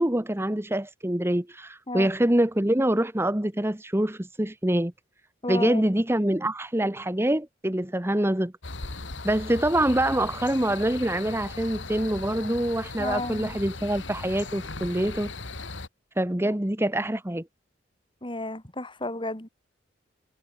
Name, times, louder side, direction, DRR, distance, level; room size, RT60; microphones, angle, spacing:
voice 1, 0.0-4.9 5.5-8.5 9.2-15.3 16.2-17.4, right 1 dB, 15° right, 1.1 m, -25 dB
voice 2, 5.4-5.8 13.0-13.5 18.2-19.5, left 2 dB, 25° left, 3.1 m, -32 dB
sound 1, 8.6-15.9, left 3 dB, 80° left, 2.8 m, -38 dB
head